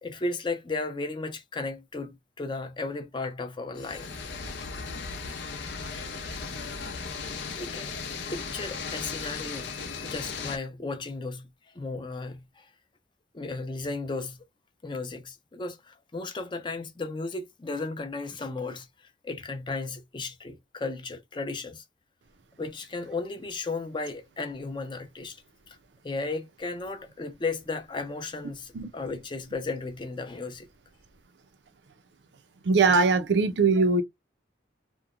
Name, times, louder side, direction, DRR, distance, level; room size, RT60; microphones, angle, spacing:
voice 1, 0.0-4.1 7.6-7.9 8.3-9.7 10.0-11.5 11.7-12.7 13.3-14.4 14.8-21.8 22.6-25.4 25.7-25.8 26.0-30.7, left 3 dB, 25° left, 0.5 m, -35 dB
wreck dry, 3.8-10.6, left 5 dB, 75° left, 0.6 m, -36 dB
voice 2, 32.6-34.0, right 4 dB, 80° right, 0.5 m, -21 dB
2.9 x 2.1 x 2.4 m
head